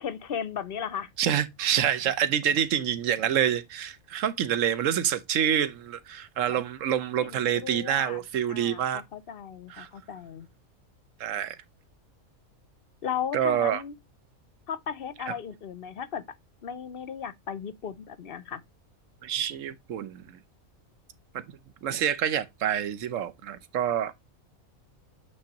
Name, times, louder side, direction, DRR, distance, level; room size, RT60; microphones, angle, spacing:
voice 1, 0.0-1.1 7.2-8.2 8.5-10.5 13.0-13.9 14.7-16.2 16.6-18.6, left 8 dB, 55° left, 0.7 m, -36 dB
voice 2, 1.2-9.0 9.7-9.9 11.2-11.6 13.3-13.8 15.3-15.4 19.2-20.4 21.3-21.4 21.8-24.1, right 9 dB, 65° right, 1.1 m, -27 dB
8.6 x 4.1 x 2.8 m
omnidirectional pair, 1.5 m